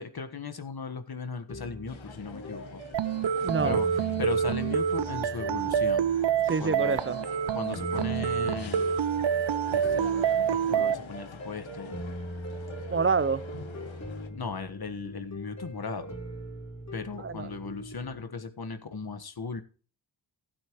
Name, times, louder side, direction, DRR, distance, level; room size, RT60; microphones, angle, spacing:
voice 1, 0.0-2.8 3.6-3.9 4.2-6.1 6.6-7.0 7.5-8.9 9.7-11.9 14.3-16.2 16.9-19.6, left 5 dB, 50° left, 1.5 m, -37 dB
sound 1, 1.5-18.2, equal, 35° left, 3.4 m, -41 dB
sound 2, 1.9-14.3, left 6 dB, 75° left, 1.4 m, -46 dB
sound 3, 2.9-10.9, right 8 dB, 65° right, 0.6 m, -27 dB
voice 2, 3.4-3.8 6.5-7.2 12.9-13.4 17.2-17.5, right 5 dB, 25° right, 0.7 m, -27 dB
16.0 x 8.7 x 3.1 m
wide cardioid pair, 75°, 47 cm